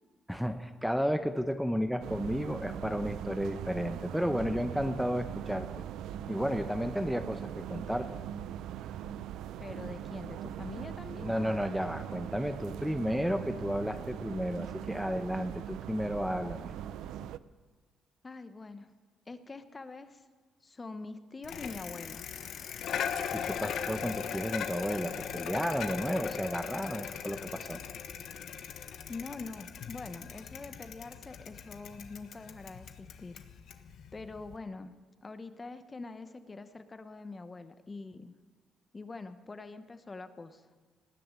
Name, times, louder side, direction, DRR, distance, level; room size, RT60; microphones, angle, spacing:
voice 1, 0.3-5.7 6.3-8.1 11.2-16.7 23.3-27.8, equal, ahead, 8 dB, 0.9 m, -32 dB
sound 1, 2.0-17.4, right 10 dB, 85° right, 0.5 m, -41 dB
voice 2, 9.6-11.3 18.2-18.9 19.3-20.2 20.6-22.3 29.1-33.4 34.1-34.9 35.2-38.3 38.9-40.6, left 3 dB, 25° left, 10 dB, 1.1 m, -44 dB
Bicycle, 21.4-34.6, left 8 dB, 75° left, 1.2 m, -39 dB
19.0 x 7.7 x 9.1 m, 1.4 s
cardioid pair, 90°, 0 cm